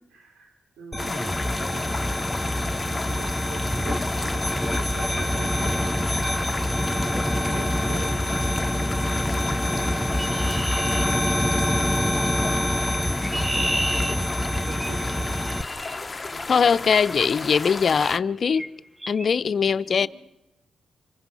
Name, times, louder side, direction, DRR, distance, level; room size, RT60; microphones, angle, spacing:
voice 1, 0.1-1.9 2.9-8.7 13.1-15.9 16.3-17.3 18.3-18.6 19.7-20.1, right 4 dB, 85° right, 3.7 m, -44 dB
sound 1, 0.9-15.6, left 1 dB, 10° left, 1.0 m, -26 dB
sound 2, 1.0-18.2, left 3 dB, 30° left, 1.1 m, -33 dB
Chirp tweet, 10.2-11.8 12.8-16.0 17.1-17.4 17.9-18.2 18.5-18.7 19.0-19.3, right 1 dB, 15° right, 1.5 m, -33 dB
voice 2, 16.5-18.6 19.1-20.1, left 6 dB, 55° left, 0.8 m, -21 dB
28.5 x 26.0 x 5.7 m
supercardioid pair, 50°, 0 cm